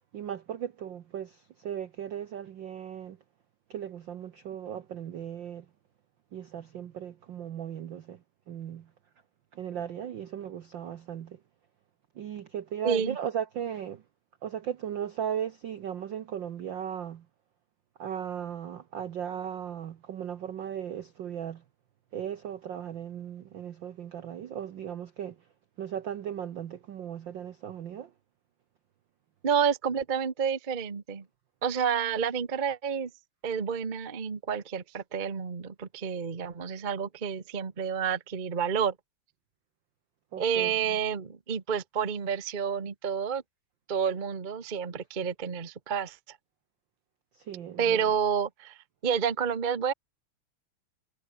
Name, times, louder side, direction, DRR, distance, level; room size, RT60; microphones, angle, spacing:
voice 1, 0.1-3.2 3.7-5.7 6.3-8.9 9.5-11.4 12.1-14.0 14.4-17.3 18.0-21.6 22.1-25.4 25.8-28.1 40.3-41.0 47.3-48.0, right 9 dB, 70° right, 1.1 m, -37 dB
voice 2, 12.8-13.2 29.4-31.2 31.6-33.1 33.4-38.9 40.4-43.4 43.9-46.4 47.8-49.9, right 7 dB, 40° right, 0.6 m, -29 dB
omnidirectional pair, 3.4 m